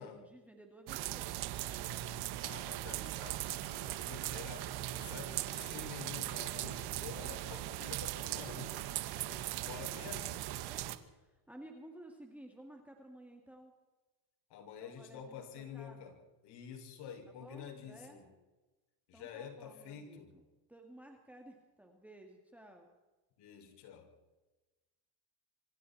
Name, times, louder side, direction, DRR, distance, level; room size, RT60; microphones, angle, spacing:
voice 1, 0.0-1.3 10.7-13.7 14.8-16.1 17.4-18.2 19.1-20.4 20.7-22.9, right 1 dB, 5° right, 2 dB, 2.6 m, -55 dB
sound 1, 0.9-11.0, right 15 dB, 55° right, 1.7 m, -39 dB
voice 2, 2.4-8.7 9.3-10.4 14.5-16.1 16.4-18.3 19.1-20.3 23.4-24.1, left 7 dB, 55° left, 3 dB, 6.1 m, -49 dB
27.0 x 25.5 x 4.4 m, 1.2 s
cardioid pair, 140°, 48 cm